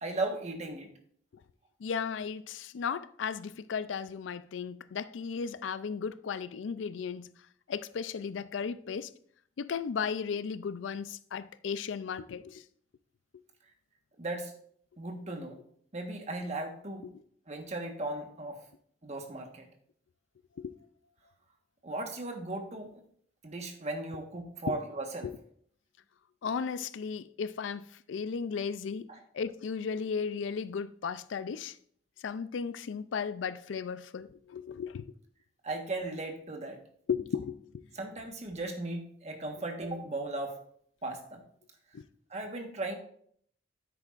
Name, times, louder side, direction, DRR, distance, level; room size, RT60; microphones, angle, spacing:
voice 1, 0.0-0.9 14.2-14.5 15.0-15.6 15.9-17.1 17.5-18.6 19.0-19.7 21.8-23.0 23.4-25.3 29.1-29.2 35.6-36.8 37.9-40.6 41.0-41.4 42.3-42.9, right 2 dB, 35° right, 1.3 m, -37 dB
voice 2, 1.8-7.3 7.7-9.1 9.6-12.6 20.6-20.7 25.2-25.4 26.4-29.1 29.3-31.7 32.2-35.1 37.1-37.8 41.9-42.0, left 6 dB, 85° left, 0.4 m, -35 dB
9.7 x 8.4 x 2.5 m
head